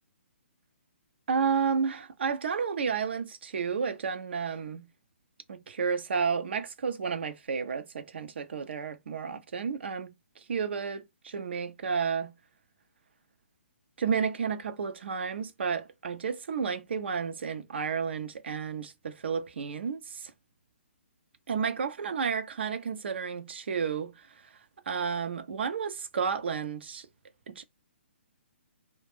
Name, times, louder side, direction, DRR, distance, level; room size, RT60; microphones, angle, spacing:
voice 1, 1.3-4.9 5.5-12.3 14.0-20.3 21.5-24.5 24.9-27.1 27.5-27.6, right 6 dB, 60° right, 0.5 m, -31 dB
2.4 x 2.1 x 3.3 m
figure-of-eight pair, 130°, 7 cm